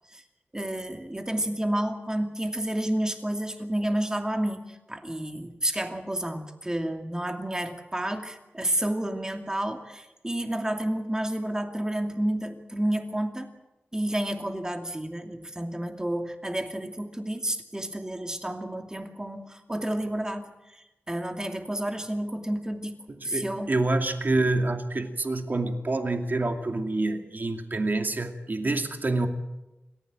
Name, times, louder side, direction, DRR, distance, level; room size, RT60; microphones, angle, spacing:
voice 1, 0.5-13.5 13.9-23.7, right 1 dB, 15° right, 4 dB, 2.7 m, -30 dB
voice 2, 23.1-29.3, right 2 dB, 45° right, 5 dB, 2.5 m, -27 dB
27.0 x 15.0 x 9.0 m, 1.0 s
wide cardioid pair, 110°, 4 cm